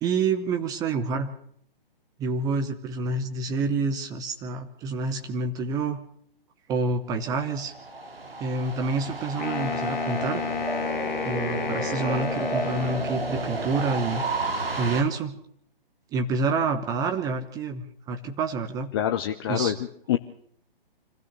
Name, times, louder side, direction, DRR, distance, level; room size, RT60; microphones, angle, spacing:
voice 1, 0.0-1.3 2.2-6.0 6.7-7.7 8.4-10.5 11.2-14.2 14.8-15.3 16.1-18.9 19.5-19.7, right 4 dB, 10° right, 6 dB, 1.0 m, -28 dB
sound 1, 7.3-15.0, right 3 dB, 75° right, 3.7 m, -32 dB
Wind instrument woodwind instrument, 9.4-13.6, left 5 dB, 50° left, 2.0 m, -31 dB
voice 2, 18.9-20.2, left 11 dB, 25° left, 7 dB, 0.8 m, -26 dB
25.5 x 16.0 x 6.7 m, 0.64 s
figure-of-eight pair, 130°, 29 cm